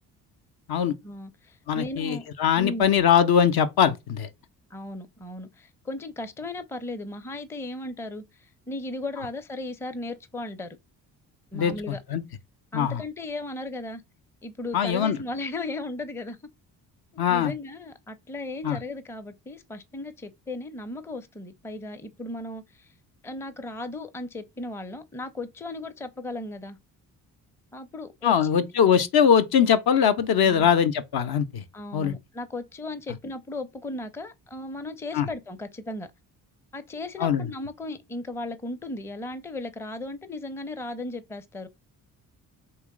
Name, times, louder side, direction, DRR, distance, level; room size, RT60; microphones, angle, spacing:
voice 1, 1.0-2.3 2.6-3.0 4.7-10.8 11.5-12.0 12.7-14.0 14.4-16.4 17.3-22.9 23.2-26.8 27.7-28.6 30.4-30.7 31.7-36.1 36.7-41.7, left 2 dB, 5° left, 0.5 m, -36 dB
voice 2, 1.7-4.3 11.5-12.2 12.7-13.0 14.7-15.2 17.2-17.5 18.6-18.8 28.2-31.6 31.9-32.1 35.1-35.3 37.2-37.5, left 8 dB, 50° left, 0.6 m, -22 dB
3.1 x 2.9 x 3.6 m
hypercardioid pair, 40°, 49 cm